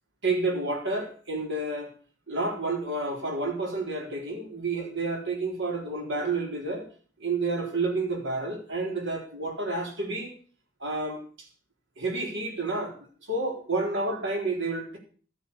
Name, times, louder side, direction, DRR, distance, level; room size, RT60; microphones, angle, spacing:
voice 1, 0.2-1.9 2.3-6.9 7.2-10.3 10.8-11.5 12.0-12.9 13.2-15.0, right 3 dB, 60° right, 2 dB, 4.0 m, -30 dB
13.0 x 9.0 x 6.9 m, 0.42 s
head